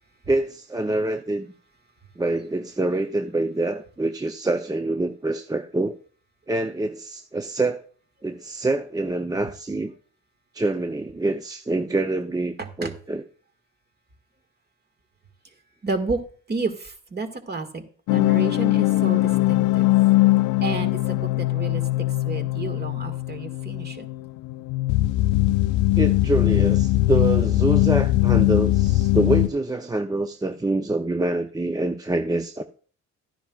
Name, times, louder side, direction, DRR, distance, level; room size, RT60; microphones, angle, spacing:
voice 1, 0.3-1.5 2.2-5.9 6.5-7.8 8.2-9.9 10.5-13.2 26.0-32.6, right 2 dB, 10° right, 0.5 m, -26 dB
voice 2, 15.8-16.2 16.5-17.8 18.1-19.9 20.6-21.8 22.2-24.1, right 3 dB, 35° right, 1.7 m, -31 dB
sound 1, 18.1-29.5, left 17 dB, 80° left, 0.5 m, -21 dB
12.5 x 10.0 x 2.3 m
cardioid pair, 90°, 30 cm